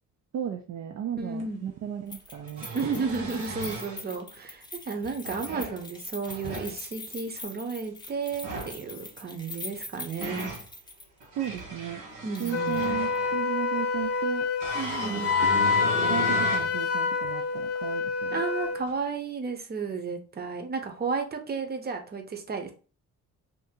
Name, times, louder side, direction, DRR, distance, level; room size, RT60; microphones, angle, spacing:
voice 1, 0.3-2.7 11.4-12.0 12.4-14.5 15.6-18.4, right 10 dB, 60° right, 4 dB, 0.5 m, -35 dB
voice 2, 1.2-1.6 2.7-10.5 12.2-12.8 14.7-15.3 18.3-22.7, right 4 dB, 30° right, 5 dB, 0.8 m, -33 dB
sound 1, 1.4-1.5 2.3-4.0 5.0-5.8 6.2-6.7 8.3-8.8 9.7-10.6 11.2-13.4 14.6-16.7 17.2-17.3 18.9-19.0, right 3 dB, 80° right, 1.3 m, -36 dB
Keys jangling, 2.1-11.3 11.6-11.7 12.3-12.9 13.2-13.3, left 2 dB, 15° left, 0.7 m, -43 dB
Wind instrument woodwind instrument, 12.5-18.8, left 5 dB, 50° left, 0.5 m, -27 dB
2.8 x 2.6 x 3.6 m, 0.37 s
cardioid pair, 90°, 30 cm